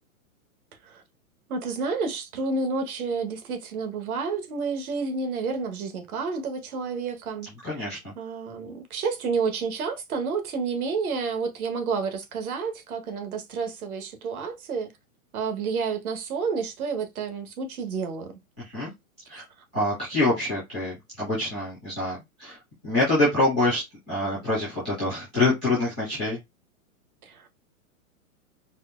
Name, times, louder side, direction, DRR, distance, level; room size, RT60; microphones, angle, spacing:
voice 1, 1.5-7.5 8.2-14.9 15.3-18.3 19.3-19.4 27.2-27.5, right 5 dB, 80° right, 1.3 m, -30 dB
voice 2, 7.6-8.1 18.6-18.9 19.3-19.4 19.7-26.4, left 2 dB, 5° left, 0.3 m, -26 dB
4.2 x 2.3 x 2.4 m
hypercardioid pair, 165°, 43 cm